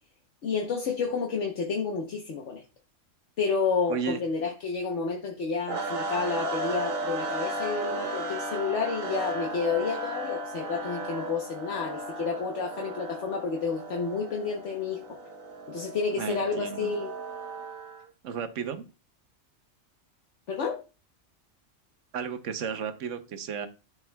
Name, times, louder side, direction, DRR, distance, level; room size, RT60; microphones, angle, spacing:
voice 1, 0.4-2.6 3.4-15.0 15.7-17.1 20.5-20.8, left 5 dB, 65° left, 1.2 m, -30 dB
voice 2, 3.9-4.2 16.2-16.9 18.2-18.8 22.1-23.7, right 7 dB, 70° right, 1.2 m, -33 dB
sound 1, 5.7-18.0, right 2 dB, 85° right, 1.6 m, -35 dB
13.0 x 4.6 x 2.2 m
omnidirectional pair, 1.4 m